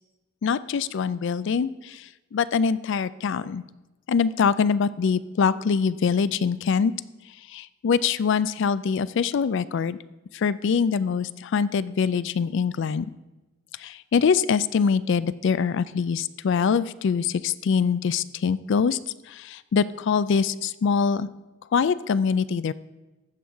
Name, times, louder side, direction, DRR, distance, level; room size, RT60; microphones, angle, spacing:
voice 1, 0.4-2.1 2.3-3.6 4.1-6.9 7.5-10.0 10.3-13.1 13.8-19.0 19.3-21.3 21.7-22.7, left 6 dB, 60° left, 17 dB, 0.3 m, -24 dB
15.0 x 5.5 x 4.5 m, 1.1 s
head